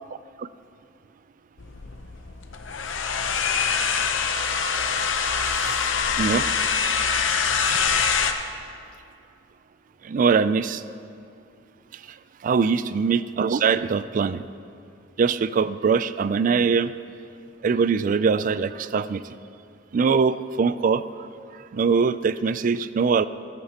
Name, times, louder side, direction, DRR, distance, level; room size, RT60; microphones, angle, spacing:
sound 1, 1.6-8.3, left 6 dB, 85° left, 0.7 m, -24 dB
voice 1, 10.0-10.8 11.9-12.0 12.4-14.4 15.2-16.9 17.6-19.2 19.9-21.3 21.7-23.3, right 5 dB, 45° right, 15 dB, 0.3 m, -22 dB
14.5 x 13.5 x 2.9 m, 2.4 s
head